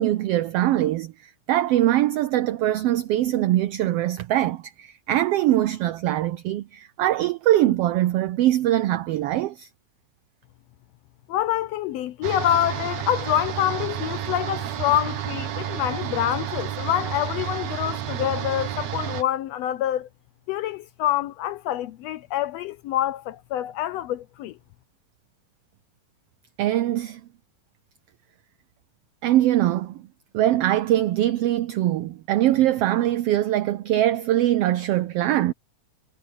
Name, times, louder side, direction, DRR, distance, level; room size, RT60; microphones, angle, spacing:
voice 1, 0.0-9.7 26.6-27.2 29.2-30.0 30.3-35.5, right 13 dB, 90° right, 1.3 m, -22 dB
voice 2, 11.3-20.1 20.5-24.6, left 12 dB, 80° left, 1.5 m, -26 dB
sound 1, 12.2-19.2, right 11 dB, 70° right, 2.6 m, -31 dB
omnidirectional pair, 3.4 m